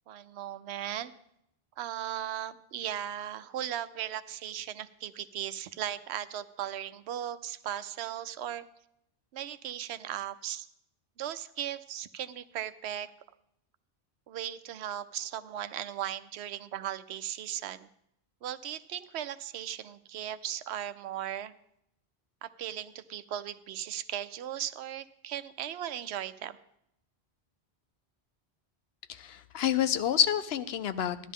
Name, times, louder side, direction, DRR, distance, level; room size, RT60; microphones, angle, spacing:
voice 1, 0.1-1.1 1.8-8.6 9.3-10.7 11.2-13.1 14.3-17.9 18.4-21.5 22.4-26.6, right 11 dB, 85° right, 14 dB, 0.8 m, -37 dB
voice 2, 29.1-31.3, left 9 dB, 75° left, 12 dB, 0.8 m, -28 dB
13.5 x 11.0 x 3.6 m, 0.77 s
omnidirectional pair, 1.1 m